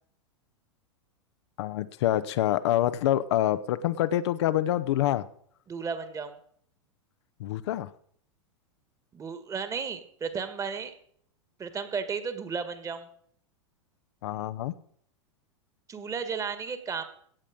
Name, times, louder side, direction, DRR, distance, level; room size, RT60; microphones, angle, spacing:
voice 1, 1.6-5.3 7.4-7.9 14.2-14.7, left 13 dB, 60° left, 13 dB, 0.7 m, -26 dB
voice 2, 5.7-6.4 9.1-10.9 11.6-13.1 15.9-17.0, right 5 dB, 20° right, 10 dB, 1.6 m, -34 dB
16.5 x 7.6 x 5.1 m, 0.62 s
figure-of-eight pair, 95°, 16 cm